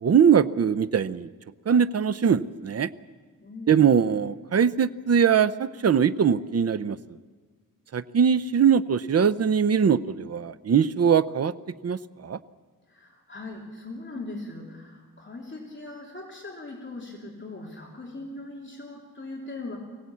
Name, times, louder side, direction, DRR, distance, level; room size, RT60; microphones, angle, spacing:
voice 1, 0.0-1.3 1.7-2.9 3.7-7.0 7.9-11.5 11.8-12.4, right 7 dB, 50° right, 14 dB, 0.6 m, -21 dB
voice 2, 3.4-3.9 12.9-19.8, left 2 dB, 35° left, -1 dB, 3.2 m, -40 dB
24.0 x 17.0 x 8.4 m, 1.5 s
wide cardioid pair, 120°, 33 cm